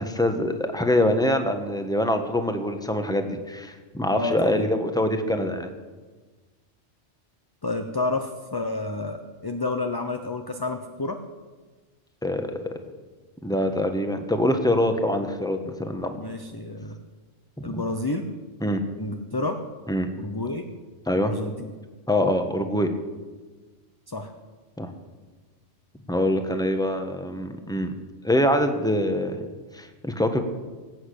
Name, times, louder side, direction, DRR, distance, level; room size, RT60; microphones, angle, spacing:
voice 1, 0.0-5.7 12.2-12.6 13.4-16.2 17.6-17.8 18.6-18.8 19.9-20.1 21.1-21.3 22.1-22.9 24.8-24.9 26.1-27.9 28.2-29.4 29.7-30.4, left 1 dB, 5° left, 6 dB, 1.3 m, -24 dB
voice 2, 4.1-4.7 7.6-11.2 16.2-17.0 17.6-18.3 19.0-19.6 20.2-20.7 21.1-21.7 24.1-24.3, left 2 dB, 20° left, 5 dB, 0.8 m, -30 dB
18.5 x 8.5 x 8.5 m, 1.3 s
omnidirectional pair, 1.2 m